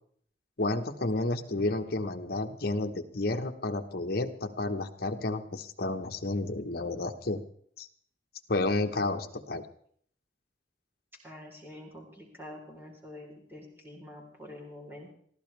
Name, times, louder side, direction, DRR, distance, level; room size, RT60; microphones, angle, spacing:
voice 1, 0.6-7.4 7.8-7.9 8.5-9.7, left 2 dB, 55° left, 6 dB, 1.1 m, -31 dB
voice 2, 11.2-15.1, left 1 dB, 15° right, -1 dB, 3.8 m, -46 dB
21.5 x 15.0 x 3.4 m, 0.62 s
head